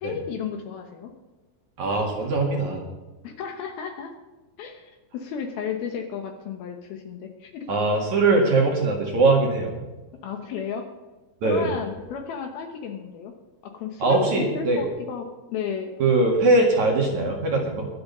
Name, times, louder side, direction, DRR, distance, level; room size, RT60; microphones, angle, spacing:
voice 1, 0.0-1.1 3.2-4.1 4.6-7.7 10.2-10.8 11.4-13.3 13.7-15.9, left 7 dB, 70° left, 5 dB, 2.6 m, -33 dB
voice 2, 1.8-2.8 7.7-9.8 11.4-11.7 14.0-14.8 16.0-17.9, right 2 dB, 50° right, 1 dB, 2.8 m, -21 dB
22.5 x 7.8 x 5.6 m, 1.2 s
omnidirectional pair, 5.3 m